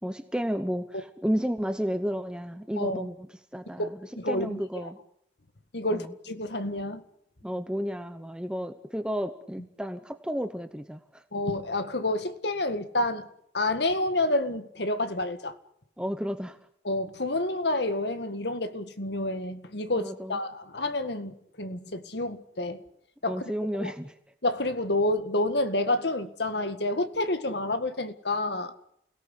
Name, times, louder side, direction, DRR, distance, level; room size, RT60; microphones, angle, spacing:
voice 1, 0.0-3.3 3.5-3.9 4.3-5.0 5.9-6.1 7.4-11.0 16.0-16.6 20.0-20.4 23.3-24.1, equal, 5° right, 0.9 m, -32 dB
voice 2, 2.8-3.1 3.8-3.9 4.2-4.9 5.7-7.0 11.3-13.3 13.5-15.5 16.8-22.8 23.2-23.4 23.7-23.9 24.4-28.7, left 2 dB, 70° left, 2.0 m, -29 dB
29.0 x 18.0 x 8.3 m
head